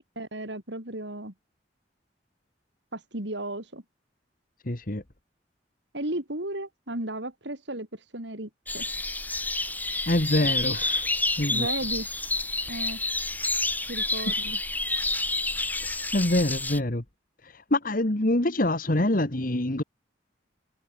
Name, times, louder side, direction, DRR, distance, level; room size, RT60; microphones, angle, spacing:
voice 1, 0.0-1.3 2.9-3.8 5.9-8.9 11.5-12.1 12.7-13.0 13.9-14.6, right 1 dB, 70° right, 4.5 m, -34 dB
voice 2, 4.7-5.0 10.1-11.1 11.4-11.7 15.8-17.0 17.4-19.8, left 1 dB, 50° left, 1.8 m, -25 dB
sound 1, 8.7-16.8, left 2 dB, 10° left, 4.2 m, -29 dB
head